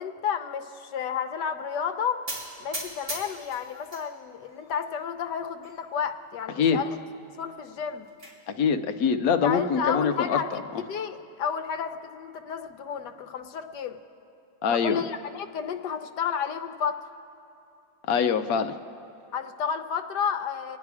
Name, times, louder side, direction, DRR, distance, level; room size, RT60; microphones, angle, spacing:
voice 1, 0.0-2.2 2.6-7.0 7.4-8.1 9.4-10.6 10.9-14.0 14.7-17.0 19.3-20.8, left 7 dB, 85° left, 6 dB, 1.4 m, -31 dB
sound 1, 2.3-4.1 4.4-5.1 5.6-5.7 6.0-6.1 6.5-6.6 7.7-8.3, right 1 dB, 60° right, 3.5 m, -38 dB
voice 2, 8.5-10.6 14.6-15.0 18.1-18.8, left 6 dB, 65° left, 8 dB, 1.1 m, -24 dB
26.5 x 9.7 x 4.8 m, 2.8 s
omnidirectional pair, 1.8 m